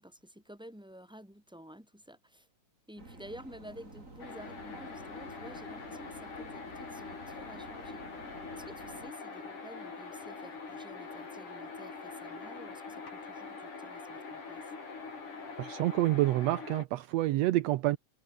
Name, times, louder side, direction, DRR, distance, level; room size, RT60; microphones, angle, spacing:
voice 1, 0.0-2.5 2.9-14.7, equal, ahead, 6.5 m, -51 dB
sound 1, 3.0-9.1, right 2 dB, 20° right, 6.1 m, -51 dB
sound 2, 4.2-16.9, left 4 dB, 70° left, 7.3 m, -44 dB
voice 2, 15.6-18.0, right 16 dB, 75° right, 1.6 m, -28 dB
omnidirectional pair, 3.6 m